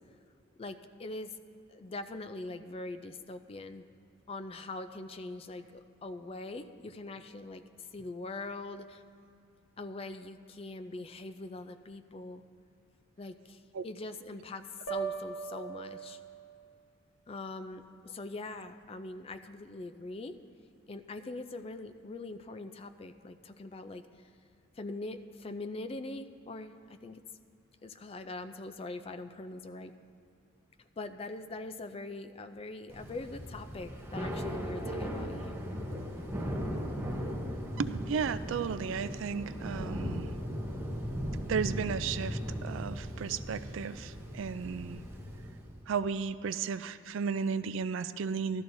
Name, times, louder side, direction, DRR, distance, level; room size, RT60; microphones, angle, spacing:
voice 1, 0.6-1.4 1.7-3.8 4.3-7.6 7.9-9.0 9.8-12.4 13.2-16.2 17.3-20.4 20.9-24.1 24.8-27.2 27.8-29.9 31.0-35.6, left 2 dB, 30° left, 9 dB, 0.4 m, -42 dB
sound 1, 14.9-16.8, right 6 dB, 75° left, 1.0 m, -39 dB
Thunder / Rain, 32.9-45.8, equal, 10° right, 0.9 m, -37 dB
voice 2, 37.8-40.3 41.5-45.0 45.9-48.6, right 6 dB, 65° right, 13 dB, 0.3 m, -34 dB
15.5 x 12.5 x 2.6 m, 2.6 s
head